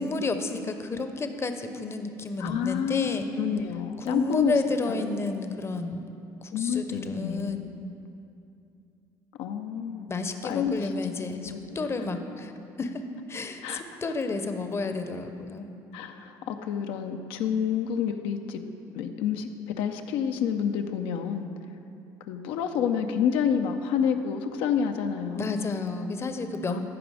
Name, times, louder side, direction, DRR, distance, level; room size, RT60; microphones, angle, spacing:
voice 1, 0.0-3.3 4.0-6.0 6.4-7.7 10.1-12.5 12.8-13.0 13.3-13.6 14.0-15.7 25.3-26.8, left 3 dB, 30° left, 8 dB, 0.7 m, -31 dB
voice 2, 2.4-4.5 4.9-5.0 6.5-7.6 9.4-10.1 10.4-10.9 11.4-11.6 13.6-13.8 15.9-18.6 18.9-19.5 19.8-21.5 22.3-25.7 26.7-26.8, left 7 dB, 75° left, 6 dB, 0.6 m, -28 dB
14.5 x 5.0 x 4.9 m, 2.7 s
supercardioid pair, 90°, 9 cm